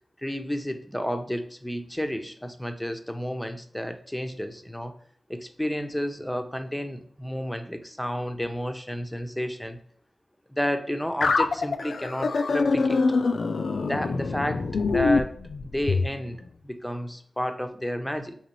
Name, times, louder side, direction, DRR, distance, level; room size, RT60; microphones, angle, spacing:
voice 1, 0.2-4.9 5.3-9.8 10.5-13.0 13.8-15.3 15.6-18.4, equal, 5° left, 7 dB, 0.5 m, -31 dB
sound 1, 11.2-16.1, left 4 dB, 75° left, 0.3 m, -24 dB
4.0 x 3.0 x 3.0 m, 0.63 s
wide cardioid pair, 70°, 0 cm